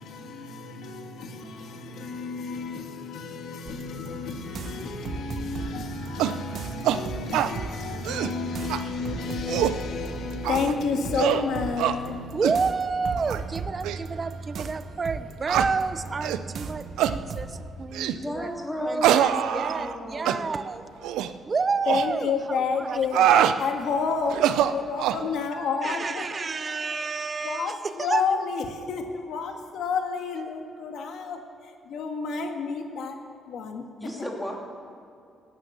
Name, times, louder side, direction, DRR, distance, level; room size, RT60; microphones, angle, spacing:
voice 1, 0.0-12.3 21.9-24.4 24.7-27.0 27.4-33.2 33.5-33.8, left 5 dB, 75° left, 1.8 m, -31 dB
sound 1, 3.7-17.7, right 4 dB, 60° right, 1.0 m, -37 dB
sound 2, 6.2-6.4 6.8-7.0 7.3-7.5 7.9-8.3 8.7-8.8 9.3-9.8 10.4-10.7 11.1-11.4 11.8-12.0 12.4-12.6 13.2-13.4 13.8-14.0 14.6-14.7 15.5-15.7 16.2-16.4 17.0-17.2 17.9-18.2 19.0-20.0 20.3-20.4 21.0-21.3 21.9-22.1 22.9-23.6 24.3-25.2, right 10 dB, 90° right, 0.5 m, -24 dB
voice 2, 12.3-18.5 18.9-20.9 21.4-23.4 25.8-28.3, right 4 dB, 35° right, 0.8 m, -30 dB
voice 3, 18.1-20.6 21.0-21.1 34.0-34.6, equal, 5° left, 2.9 m, -34 dB
17.0 x 9.7 x 7.1 m
cardioid pair, 90°, 0 cm